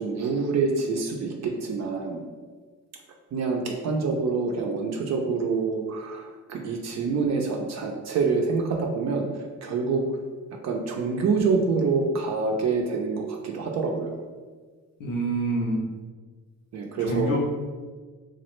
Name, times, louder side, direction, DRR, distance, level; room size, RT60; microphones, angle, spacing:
voice 1, 0.0-2.2 3.3-9.3 9.6-10.0 10.6-14.2 16.7-17.4, right 4 dB, 60° right, 1 dB, 0.5 m, -26 dB
voice 2, 15.0-15.8 17.0-17.4, right 1 dB, 90° left, -2 dB, 0.8 m, -26 dB
3.0 x 2.4 x 3.0 m, 1.4 s
cardioid pair, 90°, 30 cm